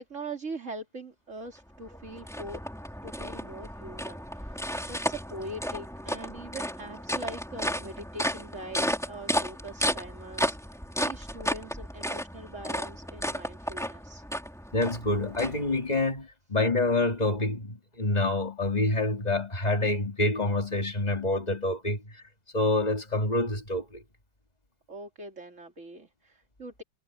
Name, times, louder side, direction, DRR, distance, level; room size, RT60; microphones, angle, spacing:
voice 1, 0.0-2.6 3.0-14.2 24.9-26.8, right 2 dB, 40° right, 3.8 m, -42 dB
sound 1, 1.6-16.0, equal, ahead, 3.5 m, -33 dB
voice 2, 14.7-22.2 22.5-24.0, left 2 dB, 20° left, 2.5 m, -27 dB
omnidirectional pair, 2.1 m